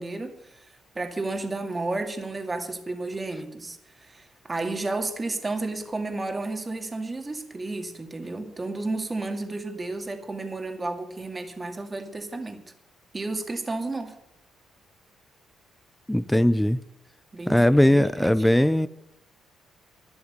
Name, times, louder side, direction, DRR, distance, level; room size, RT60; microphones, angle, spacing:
voice 1, 0.0-12.6 13.1-14.1 17.3-18.5, right 2 dB, 25° right, 2.3 m, -32 dB
voice 2, 16.1-16.8 17.5-18.9, left 1 dB, 5° left, 0.5 m, -19 dB
12.0 x 11.0 x 6.7 m
cardioid pair, 90°, 0 cm